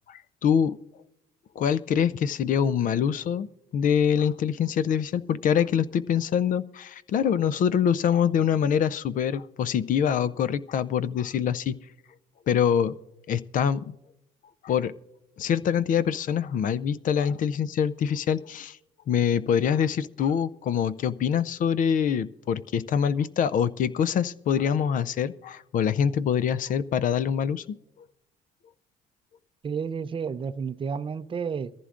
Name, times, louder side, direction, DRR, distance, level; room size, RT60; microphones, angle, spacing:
voice 1, 0.1-0.8 1.6-3.5 3.7-11.8 12.5-12.9 13.3-13.9 14.6-14.9 15.4-18.8 19.1-27.7, left 8 dB, 50° left, 0.5 m, -25 dB
voice 2, 29.6-31.7, right 6 dB, 30° right, 0.5 m, -31 dB
22.0 x 14.5 x 2.5 m
cardioid pair, 110°, 17 cm